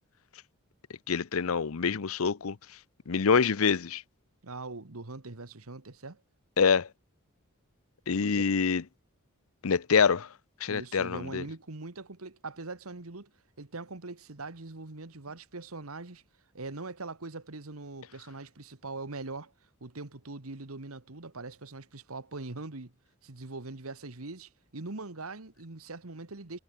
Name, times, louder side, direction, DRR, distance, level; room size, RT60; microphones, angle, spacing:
voice 1, 1.1-2.6 3.1-4.0 6.6-6.9 8.1-8.8 9.6-10.3 10.6-11.4, left 5 dB, 75° left, 0.7 m, -26 dB
voice 2, 4.4-6.2 8.1-8.5 10.7-13.3 13.6-16.2 16.5-19.5 19.8-22.9 23.2-26.6, right 3 dB, 85° right, 1.7 m, -42 dB
head